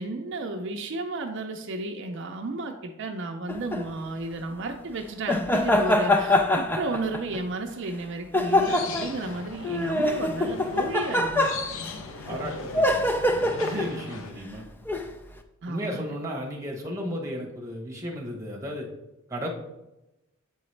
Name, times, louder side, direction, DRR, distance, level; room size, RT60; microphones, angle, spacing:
voice 1, 0.0-11.6 13.6-14.0 15.6-16.2, right 2 dB, 60° right, 4 dB, 0.5 m, -33 dB
sound 1, 3.5-3.8 5.3-7.4 8.3-9.1 9.6-11.9 12.7-14.0 14.9-15.1, left 1 dB, 10° left, 0.3 m, -24 dB
sound 2, 8.5-14.3, left 4 dB, 65° left, 0.5 m, -39 dB
voice 2, 12.2-14.6 15.7-18.9 19.3-19.5, equal, 15° right, 0 dB, 0.9 m, -35 dB
7.7 x 3.9 x 3.2 m, 0.94 s
head